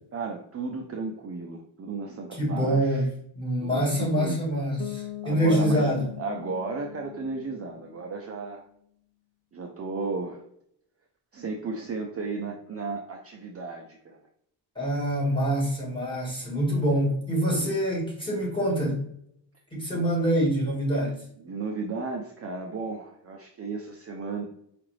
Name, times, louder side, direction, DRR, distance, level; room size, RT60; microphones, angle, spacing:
voice 1, 0.1-3.1 3.6-4.4 5.2-5.9 6.2-8.6 9.5-10.4 11.3-14.2 17.5-17.7 21.4-24.4, right 4 dB, 35° right, 1 dB, 0.4 m, -34 dB
voice 2, 2.3-3.1 3.3-6.0 14.7-19.0 19.7-21.2, equal, 10° left, -6 dB, 1.6 m, -25 dB
Bass guitar, 4.8-8.5, left 15 dB, 65° left, 0.5 m, -41 dB
4.7 x 2.5 x 3.1 m, 0.70 s
wide cardioid pair, 150°, 45 cm